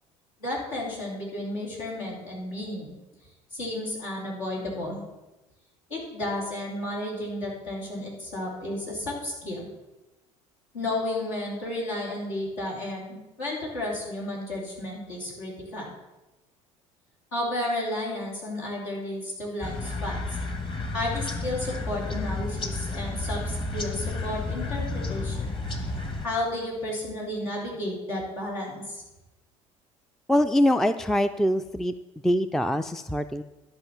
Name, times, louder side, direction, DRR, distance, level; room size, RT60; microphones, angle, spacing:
voice 1, 0.4-2.9 3.5-5.1 5.9-9.7 10.7-15.9 17.3-20.2 20.9-25.4 26.2-29.0, left 1 dB, 80° left, -4 dB, 3.4 m, -32 dB
sound 1, 19.6-26.3, left 3 dB, 30° left, 1.5 m, -31 dB
voice 2, 30.3-31.9 32.2-33.4, equal, ahead, 11 dB, 0.4 m, -23 dB
11.5 x 5.2 x 6.9 m, 1.0 s
figure-of-eight pair, 60°, 17 cm